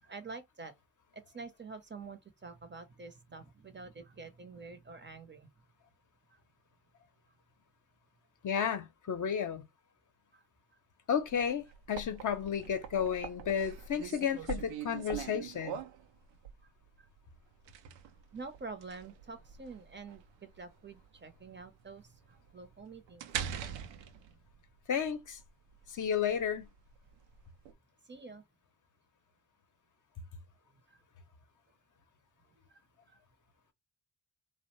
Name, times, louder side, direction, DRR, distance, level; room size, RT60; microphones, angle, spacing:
voice 1, 0.0-0.7 1.1-5.5 6.3-6.4 10.3-10.4 16.6-16.7 17.0-17.1 18.3-23.3 28.0-28.4 30.9-31.0 32.5-32.8 33.1-33.2, right 4 dB, 25° right, 0.6 m, -48 dB
voice 2, 8.4-9.6 11.1-15.8 24.9-25.4 25.9-26.7, left 7 dB, 45° left, 0.6 m, -32 dB
sound 1, 11.2-27.7, right 9 dB, 85° right, 0.6 m, -44 dB
2.5 x 2.1 x 3.0 m
supercardioid pair, 50°, 44 cm